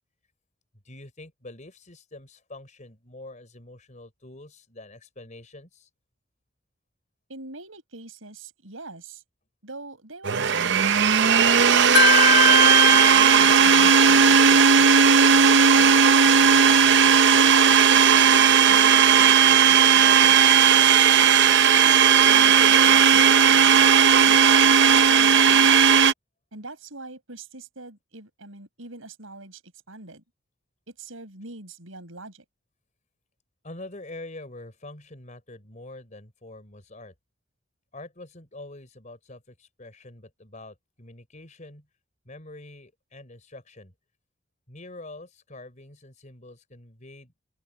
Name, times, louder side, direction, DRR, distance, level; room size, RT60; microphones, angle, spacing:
voice 1, 0.8-5.9 33.6-37.1 37.9-41.9 42.2-43.9 44.7-47.3, left 2 dB, 40° left, 5.1 m, -45 dB
voice 2, 7.3-9.2 9.6-11.0 17.3-20.8 21.6-23.7 24.2-25.8 26.5-30.2 30.9-32.4, right 2 dB, 90° right, 6.3 m, -43 dB
Domestic sounds home sounds, 10.2-26.1, right 7 dB, 60° right, 0.7 m, -16 dB
Wind chime, 11.9-15.1, left 4 dB, 55° left, 1.5 m, -23 dB
open air
head